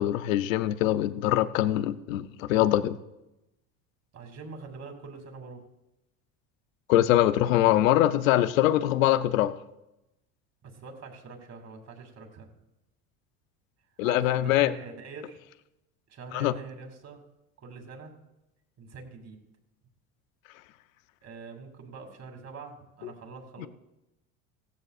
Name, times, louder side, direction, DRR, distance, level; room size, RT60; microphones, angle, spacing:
voice 1, 0.0-3.0 6.9-9.5 14.0-14.7 16.3-16.5 23.6-23.7, left 13 dB, 85° left, 13 dB, 0.7 m, -23 dB
voice 2, 4.1-5.6 10.6-12.5 14.0-15.4 16.1-17.2 17.6-18.1 18.8-19.4 21.2-23.7, right 4 dB, 40° right, 4 dB, 2.8 m, -44 dB
16.0 x 14.5 x 2.5 m, 0.91 s
supercardioid pair, 90°, 39 cm